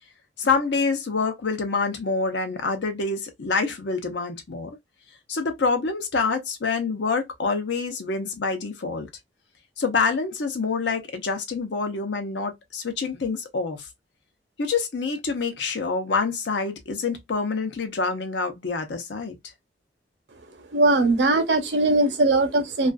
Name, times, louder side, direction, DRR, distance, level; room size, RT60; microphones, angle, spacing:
voice 1, 0.4-4.7 5.3-9.1 9.8-13.9 14.6-19.3, left 4 dB, 85° left, 0.7 m, -26 dB
voice 2, 20.7-22.9, right 2 dB, 85° right, 0.7 m, -20 dB
2.4 x 2.4 x 2.2 m
head